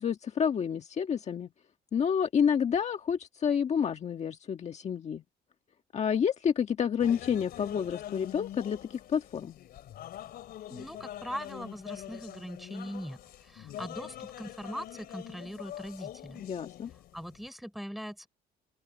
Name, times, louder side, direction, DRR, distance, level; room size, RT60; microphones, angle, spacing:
voice 1, 0.0-1.5 1.9-5.2 5.9-9.6 16.4-16.9, left 7 dB, 40° left, 1.5 m, -29 dB
sound 1, 7.0-17.5, left 12 dB, 65° left, 3.2 m, -44 dB
voice 2, 10.7-16.4 17.1-18.3, equal, ahead, 5.3 m, -41 dB
open air
cardioid pair, 110°, 17 cm